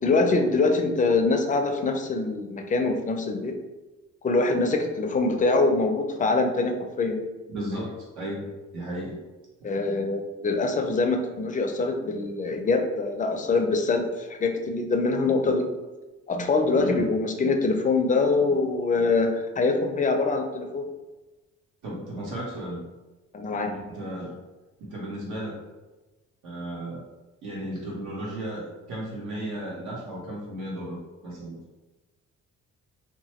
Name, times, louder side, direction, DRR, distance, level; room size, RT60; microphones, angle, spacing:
voice 1, 0.0-3.5 4.2-7.2 9.6-15.7 16.3-20.9 23.3-23.7, left 3 dB, 25° left, 4 dB, 0.4 m, -24 dB
voice 2, 7.5-9.2 9.6-9.8 16.8-17.0 21.8-22.8 23.6-24.3 24.8-25.6 26.4-27.0 27.4-31.0 31.2-31.6, right 1 dB, 80° right, -4 dB, 1.2 m, -34 dB
2.9 x 2.2 x 3.0 m, 1.1 s
cardioid pair, 90°, 30 cm